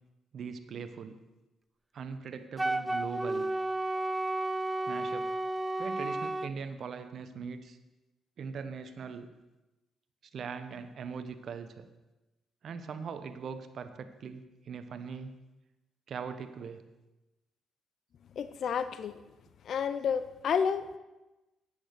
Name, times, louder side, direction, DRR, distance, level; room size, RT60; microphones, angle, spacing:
voice 1, 0.3-1.2 1.9-3.5 4.9-5.3 5.8-7.8 8.4-9.3 10.3-11.8 12.6-15.3 16.1-16.8, right 6 dB, 60° right, 9 dB, 1.0 m, -40 dB
Wind instrument woodwind instrument, 2.6-6.5, right 2 dB, 15° right, 0.4 m, -32 dB
voice 2, 18.4-19.2 19.6-21.0, left 7 dB, 65° left, 13 dB, 0.6 m, -30 dB
9.8 x 8.6 x 6.5 m, 1.0 s
cardioid pair, 80°, 0 cm